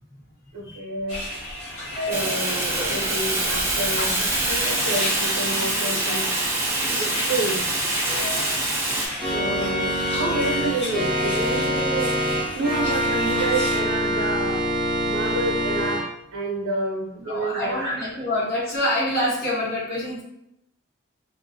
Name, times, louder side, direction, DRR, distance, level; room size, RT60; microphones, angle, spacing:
voice 1, 0.5-1.2 2.0-6.3 7.0-7.6 9.3-14.6 15.0-16.0 16.3-18.3, right 2 dB, 90° right, -2 dB, 0.5 m, -29 dB
sound 1, 1.1-13.8, left 1 dB, 25° left, 1.1 m, -33 dB
Fire, 2.1-9.1, right 2 dB, 10° right, 0.3 m, -25 dB
voice 2, 6.6-7.2 8.3-8.6 17.2-20.2, left 1 dB, 45° left, -7 dB, 1.1 m, -27 dB
Organ, 9.2-16.0, equal, 5° left, 0.9 m, -25 dB
2.4 x 2.3 x 2.5 m, 0.79 s
head